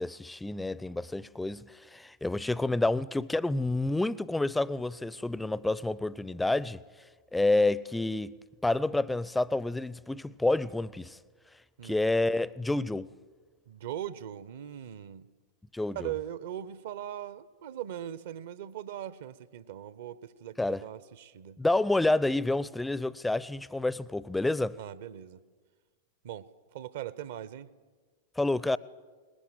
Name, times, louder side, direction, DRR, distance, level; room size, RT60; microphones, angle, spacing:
voice 1, 0.0-6.8 7.3-11.2 11.8-13.1 15.7-16.1 20.6-20.8 21.6-24.8 28.4-28.8, left 2 dB, 5° left, 0.6 m, -29 dB
voice 2, 13.7-15.3 15.9-21.6 24.8-25.4 26.2-27.7, right 11 dB, 55° right, 0.9 m, -40 dB
23.0 x 20.0 x 7.6 m
figure-of-eight pair, 95°, 0 cm